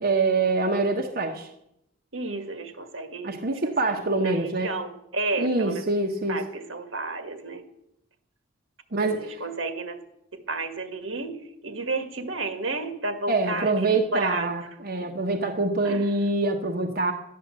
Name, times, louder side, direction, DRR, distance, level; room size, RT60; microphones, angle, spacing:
voice 1, 0.0-1.5 3.2-4.7 5.4-6.4 8.9-9.4 13.3-17.1, right 3 dB, 50° right, 1 dB, 1.3 m, -25 dB
voice 2, 2.1-3.4 3.6-5.8 6.3-7.6 9.0-10.0 10.3-11.4 11.6-14.5 15.8-16.0, right 3 dB, 75° right, 7 dB, 1.8 m, -32 dB
13.0 x 10.5 x 7.6 m, 0.81 s
head